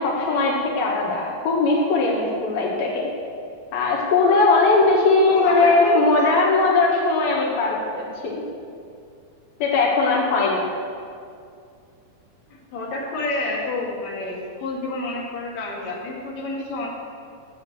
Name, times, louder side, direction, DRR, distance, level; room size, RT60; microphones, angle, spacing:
voice 1, 0.0-3.1 3.7-8.4 9.6-10.7, left 3 dB, 85° left, -3 dB, 3.8 m, -19 dB
voice 2, 5.3-6.2 10.1-10.2 12.5-16.9, left 2 dB, 55° left, -4 dB, 3.5 m, -29 dB
15.5 x 8.4 x 6.7 m, 2.3 s
omnidirectional pair, 4.1 m